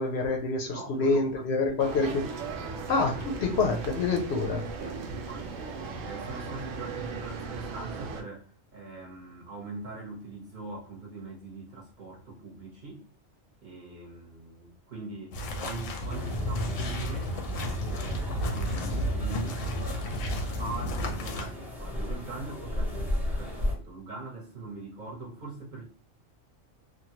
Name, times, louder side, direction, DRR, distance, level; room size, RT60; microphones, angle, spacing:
voice 1, 0.0-2.2 2.9-4.6, left 3 dB, 65° left, 0.8 m, -27 dB
voice 2, 0.7-2.0 4.3-13.1 13.6-17.3 17.7-19.6 20.6-25.8, right 3 dB, 40° right, 0.9 m, -42 dB
sound 1, 1.8-8.2, right 4 dB, 80° right, 1.0 m, -37 dB
sound 2, 15.3-21.5, equal, 85° left, 1.0 m, -32 dB
sound 3, 16.1-23.7, left 1 dB, ahead, 0.6 m, -36 dB
3.0 x 2.2 x 2.8 m
omnidirectional pair, 1.3 m